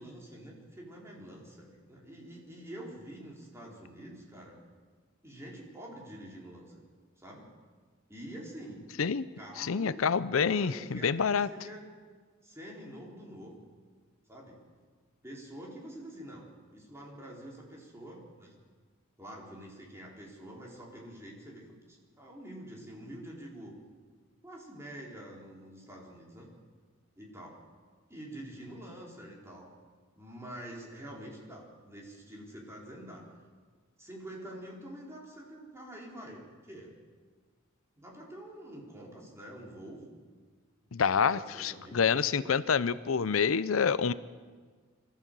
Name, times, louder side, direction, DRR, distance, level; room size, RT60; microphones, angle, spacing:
voice 1, 0.0-4.6 5.2-6.8 7.2-7.5 8.1-8.9 9.4-10.0 10.3-11.8 12.4-13.6 14.3-14.6 15.2-16.5 16.7-18.5 19.2-23.8 24.4-26.5 27.2-27.6 28.1-29.7 30.2-33.2 34.0-36.9 38.0-40.1 40.8-42.0 42.3-42.5, right 1 dB, 15° right, -3 dB, 4.2 m, -46 dB
voice 2, 9.6-11.5 40.9-44.1, left 6 dB, 90° left, 16 dB, 0.6 m, -27 dB
23.5 x 14.5 x 7.6 m, 1.5 s
head